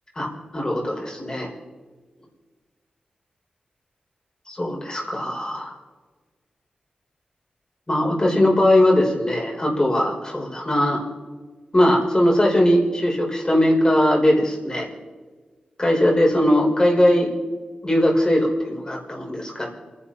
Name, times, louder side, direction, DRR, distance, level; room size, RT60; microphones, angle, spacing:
voice 1, 0.2-1.5 4.5-5.7 7.9-11.1 11.7-14.9 15.8-17.3 17.8-19.7, left 1 dB, 25° left, -1 dB, 5.6 m, -20 dB
28.0 x 11.0 x 4.5 m, 1.4 s
cardioid pair, 60°, 3 cm